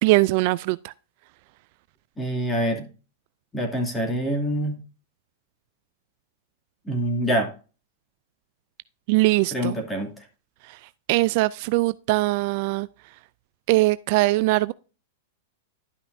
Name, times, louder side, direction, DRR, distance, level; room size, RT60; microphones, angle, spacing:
voice 1, 0.0-0.9 9.1-9.8 11.1-12.9 13.7-14.7, right 20 dB, 50° right, 0.3 m, -21 dB
voice 2, 2.2-2.8 3.5-4.8 6.9-7.5 9.5-10.1, right 1 dB, 10° left, 2.6 m, -25 dB
12.0 x 5.7 x 2.6 m
hypercardioid pair, 135°, 0 cm